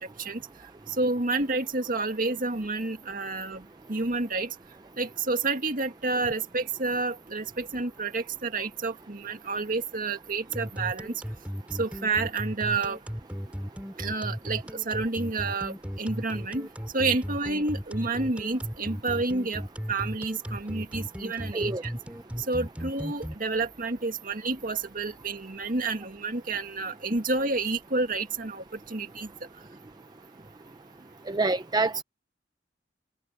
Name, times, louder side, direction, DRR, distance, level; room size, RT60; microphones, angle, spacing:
voice 1, 0.9-4.5 5.0-11.1 11.8-13.0 14.0-16.7 16.9-21.9 22.5-29.3, right 3 dB, 50° right, 2.0 m, -29 dB
sound 1, 10.5-23.3, equal, 5° right, 5.9 m, -35 dB
voice 2, 31.3-32.0, right 3 dB, 25° right, 0.6 m, -26 dB
head